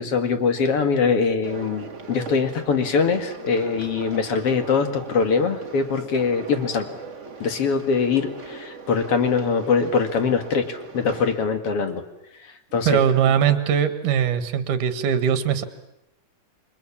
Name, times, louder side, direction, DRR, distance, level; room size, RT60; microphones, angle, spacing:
voice 1, 0.0-7.0 7.4-12.0 12.7-13.0, left 5 dB, 45° left, 7 dB, 2.5 m, -22 dB
sound 1, 1.4-11.3, right 4 dB, 40° right, 1.1 m, -39 dB
voice 2, 12.8-15.6, right 8 dB, 65° right, 10 dB, 3.0 m, -21 dB
28.5 x 24.5 x 7.3 m, 0.85 s
omnidirectional pair, 4.0 m